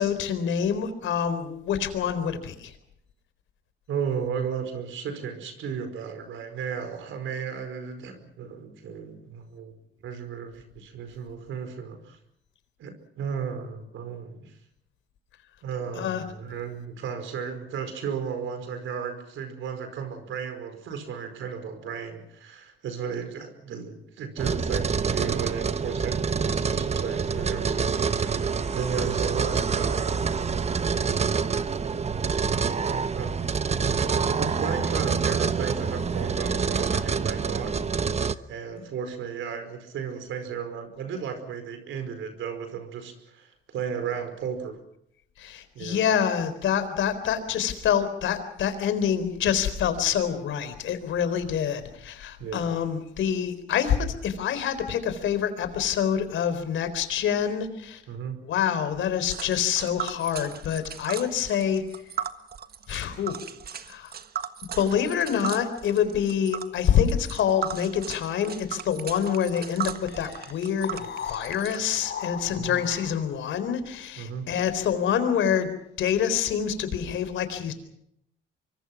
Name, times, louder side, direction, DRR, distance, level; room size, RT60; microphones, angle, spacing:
voice 1, 0.0-2.7 15.9-16.2 45.4-58.0 58.5-61.8 62.9-63.3 63.9-64.1 64.8-75.7 76.0-77.7, left 8 dB, 75° left, 11 dB, 4.0 m, -26 dB
voice 2, 3.9-9.7 10.0-12.2 12.8-14.5 15.6-30.4 31.0-32.0 33.1-37.7 38.2-44.8 45.7-46.1 52.4-52.7 58.1-58.4 72.6-72.7 74.2-74.5, right 7 dB, 80° right, 9 dB, 5.0 m, -34 dB
sound 1, 24.4-38.3, right 5 dB, 35° right, 1.1 m, -26 dB
Tick, 59.3-72.0, right 8 dB, 50° right, 1.5 m, -37 dB
sound 2, 70.1-73.4, left 7 dB, 60° left, 4.5 m, -38 dB
25.0 x 23.5 x 6.1 m, 0.75 s
cardioid pair, 90°, 20 cm